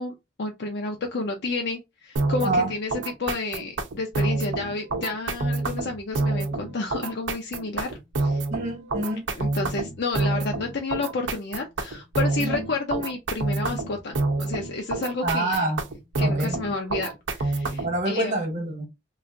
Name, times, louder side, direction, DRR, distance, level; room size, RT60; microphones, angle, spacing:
voice 1, 0.0-8.4 9.3-15.6 16.2-18.4, left 3 dB, 60° left, 0.5 m, -31 dB
sound 1, 2.2-18.0, right 3 dB, 85° right, 0.6 m, -28 dB
voice 2, 2.4-2.7 8.5-9.3 12.4-12.6 15.2-15.8 16.2-16.6 17.8-18.9, right 2 dB, 40° right, 1.0 m, -26 dB
3.1 x 2.4 x 2.5 m
head